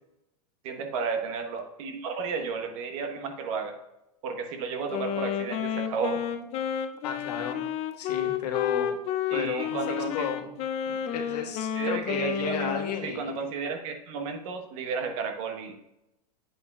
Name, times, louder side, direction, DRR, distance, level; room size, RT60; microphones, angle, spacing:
voice 1, 0.6-3.7 4.2-6.2 9.3-10.3 11.7-12.7 13.0-15.7, right 5 dB, 55° right, 5 dB, 1.2 m, -32 dB
Wind instrument woodwind instrument, 4.9-13.1, left 9 dB, 30° left, 0.5 m, -31 dB
voice 2, 7.0-7.6 8.0-8.9 9.3-10.5 10.9-13.3, left 7 dB, 85° left, 1 dB, 1.6 m, -33 dB
8.5 x 8.0 x 2.4 m, 0.89 s
supercardioid pair, 140°, 20 cm